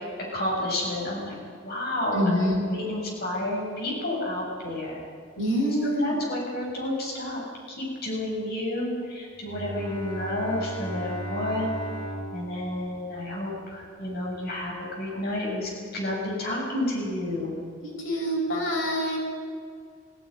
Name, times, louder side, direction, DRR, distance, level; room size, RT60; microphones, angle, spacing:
voice 1, 0.3-1.4 1.6-5.0 6.0-7.4 7.7-11.7 12.3-17.5, left 1 dB, 50° left, -3 dB, 7.7 m, -30 dB
voice 2, 2.1-2.6 5.4-6.2 17.8-19.2, equal, 70° left, -1 dB, 6.2 m, -25 dB
Bowed string instrument, 9.5-13.9, right 1 dB, 25° left, 4.1 m, -37 dB
18.0 x 16.0 x 9.9 m, 2.1 s
head